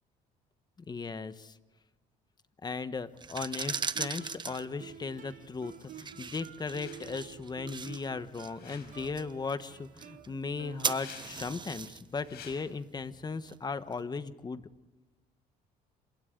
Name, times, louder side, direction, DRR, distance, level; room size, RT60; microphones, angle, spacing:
voice 1, 0.9-1.5 2.6-14.6, left 4 dB, 25° left, 12 dB, 1.3 m, -37 dB
sound 1, 3.1-14.0, right 5 dB, 25° right, 1.0 m, -40 dB
Guitar, 3.7-11.4, right 9 dB, 50° right, 1.9 m, -50 dB
sound 2, 6.7-7.2 8.4-9.2 10.7-11.6 12.2-12.6, left 8 dB, 75° left, 5.3 m, -51 dB
29.0 x 26.5 x 3.9 m, 1.2 s
cardioid pair, 110°, 17 cm